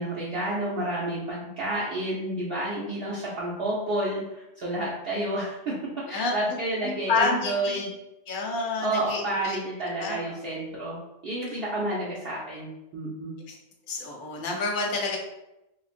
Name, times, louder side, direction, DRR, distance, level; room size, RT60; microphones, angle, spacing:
voice 1, 0.0-5.7 6.1-7.9 8.8-13.3, right 1 dB, 60° right, -7 dB, 0.8 m, -30 dB
voice 2, 6.1-6.4 6.8-7.9 8.3-9.6 10.0-10.2 13.5-13.6 13.9-15.2, left 3 dB, 55° left, 0 dB, 0.7 m, -28 dB
3.1 x 2.4 x 2.5 m, 0.92 s
omnidirectional pair, 1.2 m